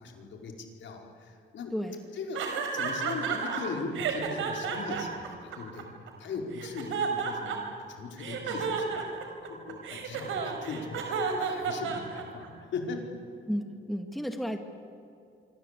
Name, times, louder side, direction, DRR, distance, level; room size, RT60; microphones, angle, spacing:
voice 1, 0.0-1.7 2.1-2.4 2.7-5.9 6.2-7.6 7.9-9.1 9.5-13.1, left 4 dB, 70° left, 2 dB, 4.9 m, -39 dB
sound 1, 2.4-3.6 4.0-6.1 6.5-7.8 8.2-12.5, right 6 dB, 80° right, 4.7 m, -32 dB
voice 2, 13.5-14.6, equal, ahead, 5 dB, 2.3 m, -32 dB
25.5 x 25.5 x 8.4 m, 2.5 s
cardioid pair, 90°, 20 cm